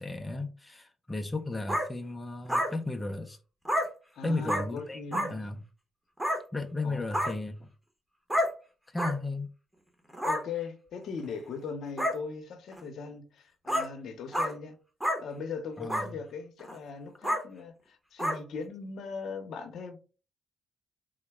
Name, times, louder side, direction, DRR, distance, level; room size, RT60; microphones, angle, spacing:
voice 1, 0.0-3.4 4.2-5.6 6.5-7.7 8.9-9.5 15.8-16.2, left 2 dB, 15° left, 0.5 m, -34 dB
sound 1, 1.7-1.9 2.5-2.7 3.6-3.9 4.4-4.6 5.1-5.3 6.2-6.4 7.1-7.3 8.3-8.5 9.0-9.1 10.1-10.4 11.2-11.3 12.0-12.1 12.7-12.8 13.7-13.9 14.3-14.5 15.0-15.2 15.9-16.1 16.6-16.7 17.2-17.4 18.2-18.4, equal, 10° right, 1.0 m, -28 dB
voice 2, 4.1-5.4 6.8-7.0 10.2-14.8 15.2-20.0, left 5 dB, 70° left, 0.7 m, -39 dB
3.7 x 2.2 x 3.4 m
cardioid pair, 90°, 0 cm